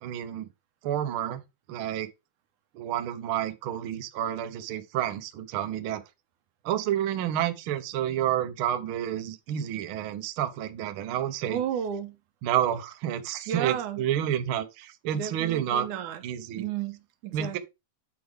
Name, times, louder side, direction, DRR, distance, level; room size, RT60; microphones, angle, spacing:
voice 1, 0.0-0.5 0.8-1.4 1.7-2.1 2.7-6.0 6.6-11.6 12.4-15.9 16.2-16.6 17.3-17.6, right 11 dB, 70° right, 1.3 m, -29 dB
voice 2, 11.5-12.2 13.5-14.0 15.1-16.2 16.6-17.6, right 9 dB, 85° right, 2.5 m, -32 dB
8.5 x 4.9 x 3.5 m
omnidirectional pair, 3.5 m